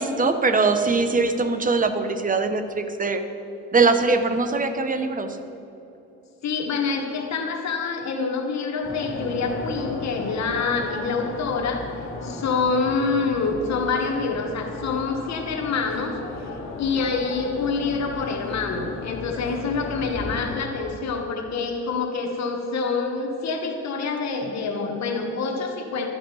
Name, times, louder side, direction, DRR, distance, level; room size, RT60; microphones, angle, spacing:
voice 1, 0.0-3.2 3.7-5.4, right 3 dB, 25° right, 8 dB, 1.0 m, -22 dB
voice 2, 6.4-16.2 16.8-26.1, left 4 dB, 60° left, 2 dB, 1.3 m, -26 dB
sound 1, 8.8-20.6, left 3 dB, 45° left, 2.1 m, -35 dB
13.0 x 8.9 x 5.6 m, 2.9 s
cardioid pair, 90°, 30 cm